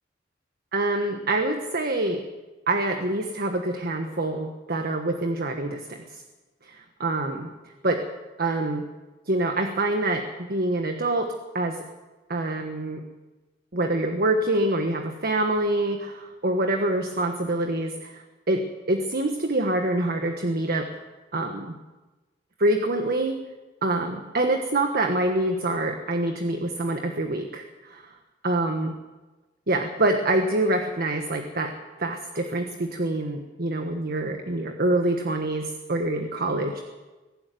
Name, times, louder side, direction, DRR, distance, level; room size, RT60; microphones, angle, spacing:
voice 1, 0.7-2.2 2.7-6.2 6.6-7.5 7.8-8.0 8.4-8.8 9.3-10.2 10.5-11.8 12.3-13.0 13.7-20.9 21.3-21.8 22.6-23.4 23.8-28.0 28.4-28.9 29.7-31.7 32.0-36.8, right 2 dB, 55° right, 5 dB, 1.5 m, -26 dB
22.5 x 12.0 x 9.4 m, 1.2 s
head